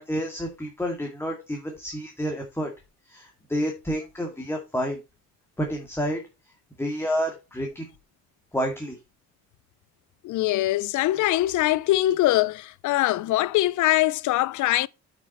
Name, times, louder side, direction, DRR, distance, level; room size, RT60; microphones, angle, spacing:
voice 1, 0.0-2.7 3.1-5.0 5.6-6.2 6.8-7.8 8.5-9.0, equal, 10° left, 2.3 m, -29 dB
voice 2, 10.2-14.9, left 16 dB, 75° left, 0.5 m, -22 dB
8.3 x 5.9 x 4.1 m
cardioid pair, 90°, 30 cm